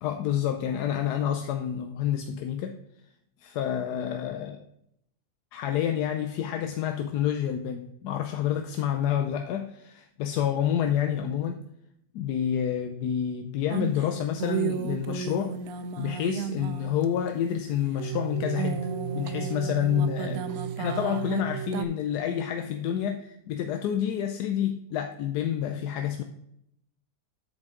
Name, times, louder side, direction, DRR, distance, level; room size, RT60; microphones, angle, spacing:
voice 1, 0.0-2.8 3.4-4.6 5.5-11.6 12.1-15.5 16.0-18.9 19.1-26.2, left 9 dB, 80° left, 5 dB, 1.2 m, -28 dB
sound 1, 13.7-17.6 18.0-21.8, right 8 dB, 70° right, 0.9 m, -33 dB
7.9 x 7.4 x 3.6 m, 0.77 s
omnidirectional pair, 1.7 m